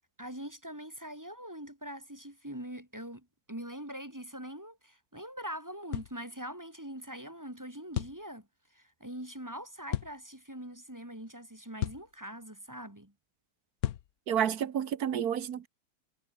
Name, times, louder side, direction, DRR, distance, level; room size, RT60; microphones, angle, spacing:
voice 1, 0.2-13.1, right 1 dB, 10° right, 2.2 m, -43 dB
sound 1, 5.9-6.2 8.0-8.2 9.9-10.1 11.8-12.1 13.8-14.1, left 12 dB, 75° left, 1.2 m, -33 dB
voice 2, 14.3-15.7, right 9 dB, 75° right, 1.7 m, -30 dB
omnidirectional pair, 1.6 m